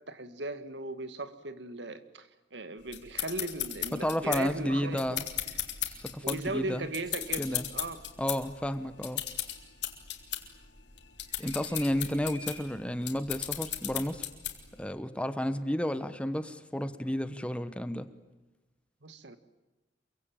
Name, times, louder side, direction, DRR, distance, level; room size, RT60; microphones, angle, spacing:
voice 1, 0.1-5.6 6.2-8.0 19.0-19.4, right 2 dB, 70° right, 11 dB, 2.1 m, -38 dB
sound 1, 2.9-14.8, left 12 dB, 70° left, 3.7 m, -36 dB
voice 2, 3.9-5.2 5.8-6.8 7.4-7.6 8.2-9.2 11.4-14.2 14.8-18.1, equal, 5° left, 11 dB, 1.2 m, -32 dB
sound 2, 6.7-7.7 11.3-12.8, right 1 dB, 25° right, 7.5 m, -51 dB
28.0 x 23.5 x 9.1 m, 1.1 s
head